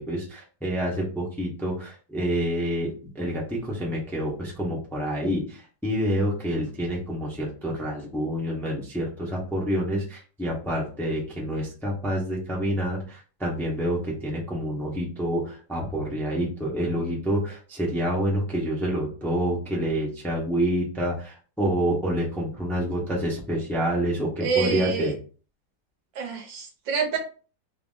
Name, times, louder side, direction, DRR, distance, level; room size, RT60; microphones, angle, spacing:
voice 1, 0.0-25.1, equal, ahead, -3 dB, 0.6 m, -28 dB
voice 2, 24.4-25.1 26.1-27.2, right 5 dB, 80° right, 3 dB, 1.6 m, -27 dB
3.8 x 2.1 x 3.8 m, 0.38 s
omnidirectional pair, 2.0 m